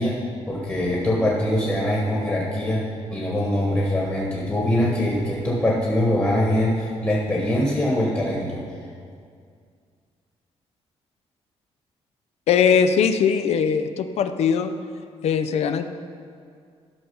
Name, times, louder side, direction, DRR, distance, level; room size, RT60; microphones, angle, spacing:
voice 1, 0.0-8.6, left 1 dB, 15° left, -4 dB, 1.3 m, -23 dB
voice 2, 12.5-14.7 15.2-15.9, left 7 dB, 70° left, 9 dB, 0.6 m, -20 dB
12.0 x 6.0 x 5.5 m, 2.2 s
cardioid pair, 130°, 11 cm